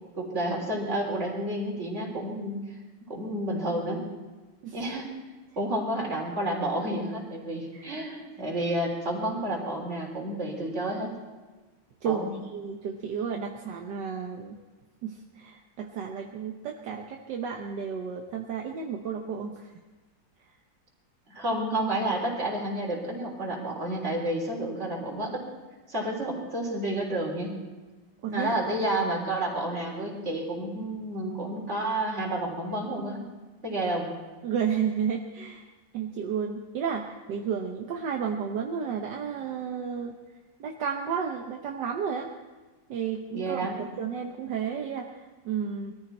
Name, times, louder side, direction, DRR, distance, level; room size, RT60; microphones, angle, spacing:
voice 1, 0.2-2.6 3.1-4.0 4.7-5.1 5.6-11.1 12.0-12.3 21.3-25.4 25.9-27.6 28.3-33.2 33.6-34.1 43.3-43.9, right 1 dB, 40° right, -2 dB, 4.0 m, -30 dB
voice 2, 12.0-14.6 15.0-19.7 28.2-28.6 34.4-35.7 35.9-40.1 40.6-42.3 42.9-43.7 44.0-45.9, right 7 dB, 75° right, 2 dB, 1.6 m, -32 dB
22.0 x 14.0 x 4.4 m, 1.3 s
omnidirectional pair, 1.9 m